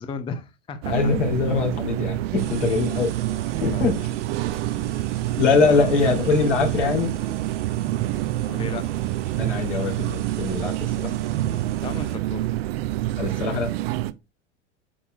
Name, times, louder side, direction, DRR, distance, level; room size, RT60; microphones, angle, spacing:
voice 1, 0.0-1.0 3.6-3.9 5.6-5.9 8.5-8.9 11.8-12.5, left 5 dB, 15° left, 0.6 m, -34 dB
sound 1, 0.8-14.1, right 15 dB, 55° right, 0.6 m, -27 dB
voice 2, 0.9-3.1 3.6-4.0 5.4-7.1 9.4-11.1 13.2-13.7, left 5 dB, 65° left, 3.1 m, -22 dB
sound 2, 2.4-12.2, right 8 dB, 70° right, 1.6 m, -40 dB
8.6 x 7.0 x 2.4 m
figure-of-eight pair, 90°, 37 cm